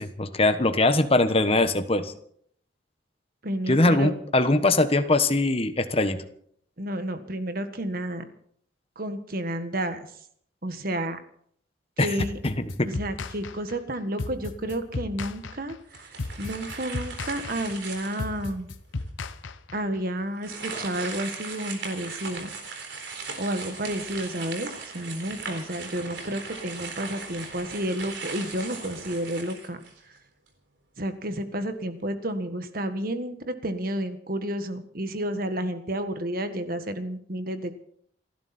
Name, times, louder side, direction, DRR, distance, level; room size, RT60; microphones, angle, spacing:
voice 1, 0.0-2.1 3.7-6.2 12.0-12.1 12.4-12.9, left 2 dB, 30° left, 9 dB, 1.2 m, -22 dB
voice 2, 3.4-4.1 6.8-8.2 8.9-10.1 10.6-11.2 12.0-12.4 12.8-16.1 16.4-18.7 19.7-22.5 23.4-29.8 31.0-37.8, right 1 dB, 50° right, 9 dB, 1.6 m, -31 dB
sound 1, 12.2-20.0, left 3 dB, 85° left, 0.9 m, -35 dB
sound 2, 15.9-18.4 19.0-19.1 20.4-30.2, right 4 dB, 65° right, 4.0 m, -38 dB
28.5 x 11.0 x 4.3 m, 0.65 s
head